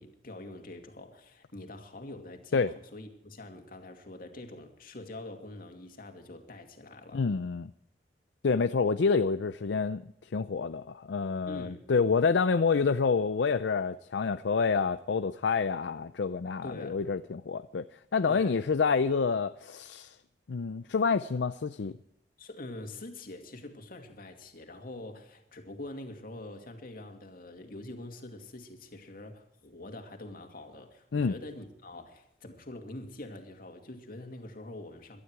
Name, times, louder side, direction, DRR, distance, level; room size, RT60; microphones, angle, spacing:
voice 1, 0.0-7.2 11.5-11.9 16.6-17.0 18.2-18.6 22.4-35.2, left 2 dB, 55° left, 4 dB, 2.5 m, -45 dB
voice 2, 7.1-7.7 8.4-10.0 10.3-17.9 18.1-20.2 20.5-21.9 31.1-31.4, left 5 dB, 75° left, 12 dB, 0.5 m, -28 dB
19.5 x 12.5 x 4.8 m, 0.80 s
head